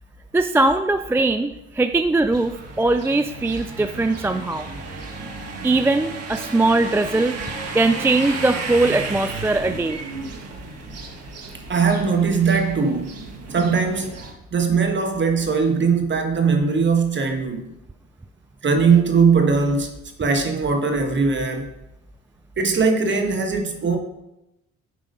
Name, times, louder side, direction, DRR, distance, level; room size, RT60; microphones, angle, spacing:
voice 1, 0.3-4.7 5.6-7.4 7.7-10.0, right 2 dB, 10° right, 0.3 m, -20 dB
sound 1, 2.3-14.3, right 3 dB, 55° right, 1.6 m, -34 dB
voice 2, 11.7-13.1 13.5-14.2 14.5-17.6 18.6-19.9 20.2-21.6 22.6-24.0, right 5 dB, 35° right, 1.5 m, -20 dB
9.5 x 3.7 x 5.2 m
supercardioid pair, 70°, 30 cm